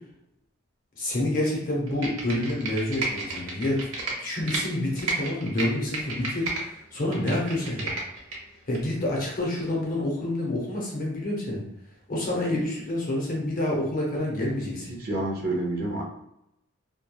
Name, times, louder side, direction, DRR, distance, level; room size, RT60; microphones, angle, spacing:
voice 1, 1.0-3.8 4.2-7.9 8.7-11.6 12.1-14.9, left 1 dB, 40° left, -3 dB, 0.7 m, -28 dB
Computer keyboard, 1.9-4.6 5.0-6.6 7.0-8.4 8.7-8.8, right 3 dB, 85° right, 0.7 m, -31 dB
voice 2, 14.9-16.0, right 2 dB, 45° right, 0 dB, 0.5 m, -28 dB
3.0 x 2.2 x 2.2 m, 0.81 s
head